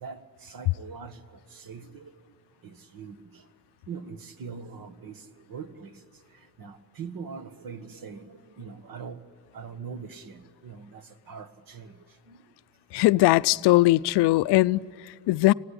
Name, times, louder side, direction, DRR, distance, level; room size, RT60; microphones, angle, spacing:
voice 1, 0.0-2.3 2.6-3.5 3.9-6.0 6.3-9.2 9.5-12.4 13.0-13.1, right 5 dB, 55° right, 1.5 m, -42 dB
voice 2, 12.9-15.5, left 18 dB, 75° left, 0.5 m, -20 dB
26.5 x 17.5 x 10.0 m
cardioid pair, 105°, 40 cm